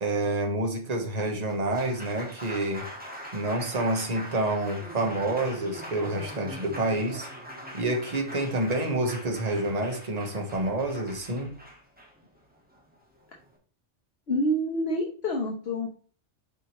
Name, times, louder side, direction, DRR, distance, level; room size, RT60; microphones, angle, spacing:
voice 1, 0.0-2.9 3.3-7.3 7.7-11.5, right 2 dB, 35° right, 3 dB, 1.3 m, -28 dB
Applause, 1.5-13.6, equal, 10° right, 1.6 m, -42 dB
voice 2, 14.3-15.9, equal, 60° left, 0 dB, 1.2 m, -27 dB
7.1 x 4.9 x 3.1 m, 0.41 s
omnidirectional pair, 1.2 m